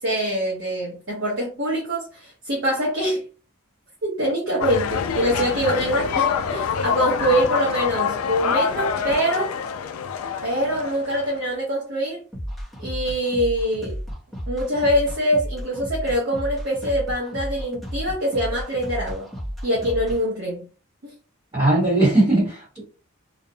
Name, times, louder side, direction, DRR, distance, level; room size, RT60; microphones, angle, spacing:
voice 1, 0.0-3.2 4.0-9.5 10.4-12.2 12.8-14.0 14.5-19.3 19.6-20.6 21.0-21.1, equal, 55° right, 0.7 m, -24 dB
sound 1, 4.6-11.4, left 6 dB, 75° left, 0.3 m, -25 dB
sound 2, 12.3-20.2, equal, ahead, 0.6 m, -32 dB
voice 2, 21.5-22.9, right 2 dB, 20° right, 1.0 m, -19 dB
2.4 x 2.0 x 2.6 m
head